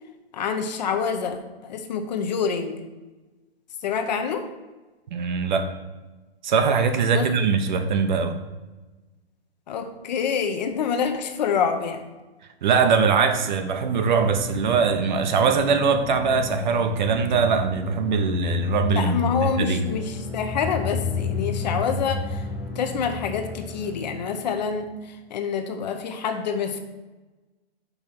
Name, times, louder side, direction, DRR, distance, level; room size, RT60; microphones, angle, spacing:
voice 1, 0.3-1.4 1.6-2.8 3.8-4.5 7.1-7.5 9.7-12.0 19.0-22.5 22.7-26.8, left 6 dB, 45° left, 6 dB, 0.7 m, -27 dB
voice 2, 5.1-5.7 6.4-8.4 12.6-19.8, right 5 dB, 45° right, 7 dB, 0.7 m, -22 dB
sound 1, 14.0-24.7, left 4 dB, ahead, 0.7 m, -31 dB
5.6 x 4.2 x 5.9 m, 1.2 s
hypercardioid pair, 150°, 31 cm